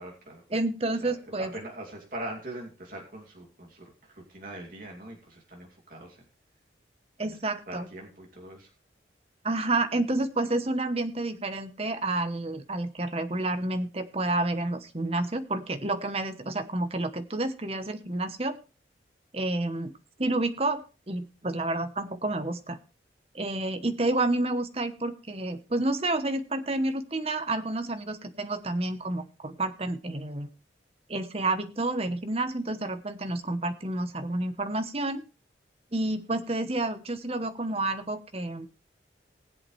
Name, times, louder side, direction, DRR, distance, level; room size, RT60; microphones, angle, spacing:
voice 1, 0.0-0.4 1.0-6.2 7.2-7.4 7.7-8.7, right 1 dB, 50° right, -1 dB, 2.6 m, -42 dB
voice 2, 0.5-1.5 7.2-7.9 9.4-18.6 19.3-22.8 23.3-30.5 31.1-35.2 35.9-38.7, right 2 dB, 30° right, 9 dB, 1.0 m, -29 dB
19.5 x 7.9 x 3.3 m, 0.32 s
head